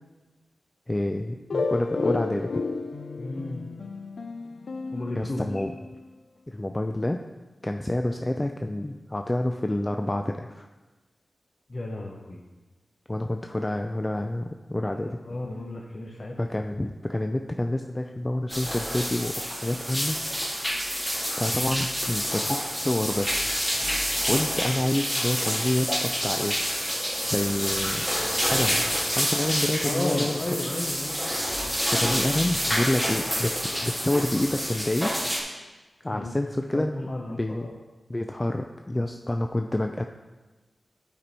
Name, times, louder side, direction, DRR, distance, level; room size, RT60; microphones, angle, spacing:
voice 1, 0.9-2.5 5.2-5.7 6.5-7.2 7.6-10.7 13.1-15.2 16.4-20.7 21.3-23.4 24.3-26.6 27.2-28.1 28.5-28.8 29.1-30.4 31.9-35.3 36.0-37.7 38.1-40.0, left 1 dB, 25° left, 5 dB, 0.4 m, -28 dB
sound 1, 1.5-6.1, left 3 dB, 80° left, 0.5 m, -32 dB
voice 2, 3.2-3.7 4.9-5.5 11.7-12.5 14.9-16.4 29.8-31.2 36.0-36.4 36.7-37.7, left 2 dB, 45° left, 0 dB, 0.8 m, -34 dB
sound 2, 18.5-35.4, equal, 5° left, 1.8 m, -28 dB
9.9 x 4.5 x 4.1 m, 1.2 s
wide cardioid pair, 65°, 0 cm